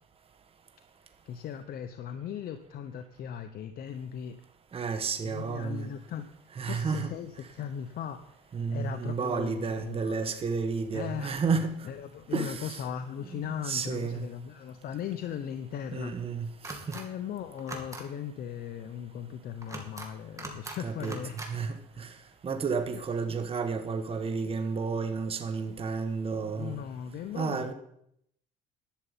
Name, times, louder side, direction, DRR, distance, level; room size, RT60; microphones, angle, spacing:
voice 1, 1.3-4.4 5.2-6.3 6.6-8.4 8.7-10.2 10.9-11.4 11.8-16.2 16.9-22.0 22.9-23.0 23.3-23.4 26.5-27.7, left 9 dB, 60° left, 0.9 m, -38 dB
voice 2, 4.7-5.9 6.5-7.1 8.5-11.7 12.3-12.8 13.3-14.3 15.9-16.8 20.8-21.2 21.5-22.1 22.4-26.8 27.3-27.7, right 5 dB, 35° right, 1.3 m, -31 dB
sound 1, 16.6-17.0 17.6-18.0 19.6-20.1 20.4-20.8 21.0-21.5, right 2 dB, 20° right, 2.5 m, -40 dB
11.5 x 6.7 x 8.9 m
cardioid pair, 110°, 17 cm